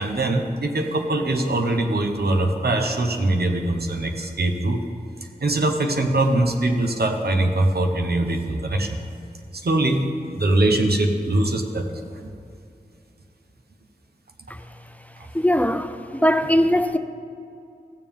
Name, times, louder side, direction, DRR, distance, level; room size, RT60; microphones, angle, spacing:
voice 1, 0.0-4.8 5.2-9.0 9.5-11.9, right 2 dB, 80° right, 0.9 m, -22 dB
voice 2, 15.3-17.0, equal, 10° left, 0.5 m, -20 dB
15.0 x 7.0 x 3.6 m
wide cardioid pair, 45°, 16 cm